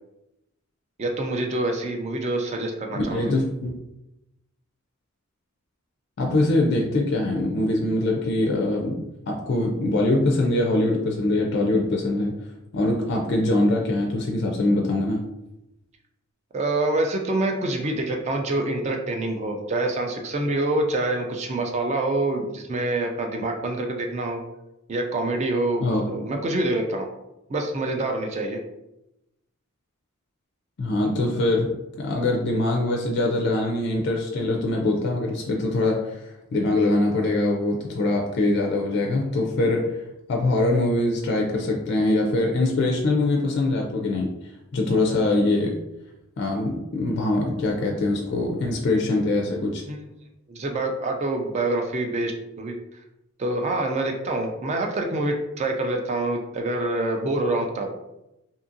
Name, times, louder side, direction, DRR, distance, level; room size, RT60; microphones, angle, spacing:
voice 1, 1.0-3.3 16.5-24.4 24.9-27.1 27.5-28.6 49.9-50.0 50.5-52.8 53.4-57.9, right 2 dB, 30° right, 3 dB, 0.3 m, -26 dB
voice 2, 2.9-3.7 6.2-12.4 12.7-15.2 25.8-26.0 30.8-31.7 32.0-40.0 40.3-44.3 44.7-45.8 46.4-49.8, left 2 dB, 55° left, 0 dB, 0.3 m, -23 dB
2.7 x 2.6 x 2.5 m, 0.90 s
head